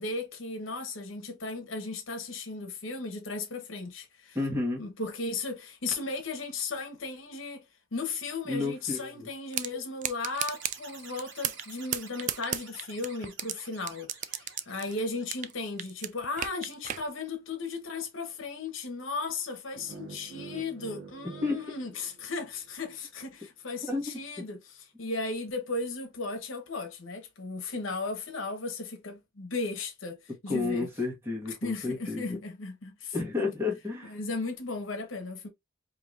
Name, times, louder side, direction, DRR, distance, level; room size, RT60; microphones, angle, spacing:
voice 1, 0.0-4.4 4.8-7.6 7.9-30.2 30.4-30.9 31.6-33.1 34.1-35.5, left 3 dB, 75° left, 1.0 m, -36 dB
voice 2, 4.3-4.8 8.5-9.3 21.4-21.6 23.9-24.0 30.5-32.4 33.1-34.2, left 3 dB, 15° right, 1.3 m, -31 dB
sound 1, 9.5-9.7 10.0-10.8 11.2-11.7 11.9-13.5 13.9-15.5 15.8-17.0, right 10 dB, 40° right, 0.3 m, -32 dB
sound 2, 10.3-15.8, right 4 dB, 65° right, 1.3 m, -50 dB
sound 3, 19.7-22.8, right 4 dB, 90° right, 0.9 m, -47 dB
4.8 x 2.8 x 2.4 m
head